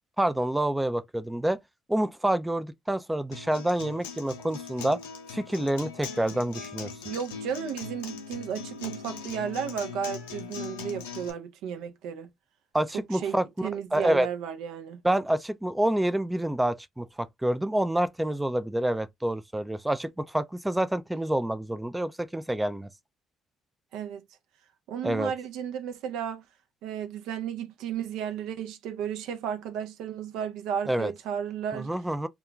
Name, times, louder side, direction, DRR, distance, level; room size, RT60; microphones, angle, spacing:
voice 1, 0.2-1.6 1.9-5.0 5.3-6.9 12.7-14.3 15.0-22.9 25.0-25.3 30.9-31.1 31.7-32.3, right 1 dB, 10° right, 0.3 m, -27 dB
Acoustic guitar, 3.3-11.3, left 6 dB, 85° left, 0.5 m, -40 dB
voice 2, 7.0-12.3 12.9-15.0 23.9-24.2 24.9-26.4 26.8-31.9, right 8 dB, 70° right, 0.4 m, -34 dB
2.3 x 2.2 x 3.7 m
hypercardioid pair, 55°, 0 cm